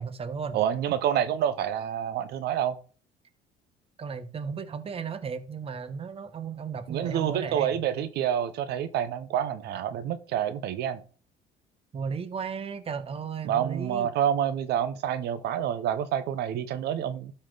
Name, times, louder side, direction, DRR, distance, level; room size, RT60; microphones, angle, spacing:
voice 1, 0.0-0.6 4.0-7.8 11.9-14.1, right 6 dB, 35° right, 1.0 m, -35 dB
voice 2, 0.5-2.8 6.9-11.0 13.4-17.3, right 10 dB, 75° right, 0.8 m, -28 dB
12.5 x 4.3 x 3.9 m
cardioid pair, 110°, 17 cm